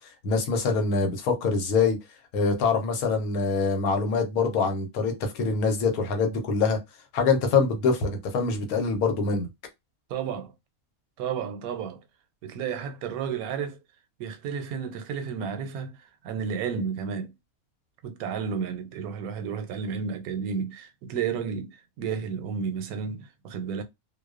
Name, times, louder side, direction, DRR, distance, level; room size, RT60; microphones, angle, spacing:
voice 1, 0.2-2.0 2.3-6.8 7.1-9.5, left 4 dB, 90° left, 1.2 m, -24 dB
voice 2, 10.1-10.5 11.2-12.0 12.4-13.8 14.2-17.3 18.0-23.8, right 6 dB, 85° right, 1.1 m, -32 dB
2.6 x 2.1 x 2.4 m
omnidirectional pair, 1.5 m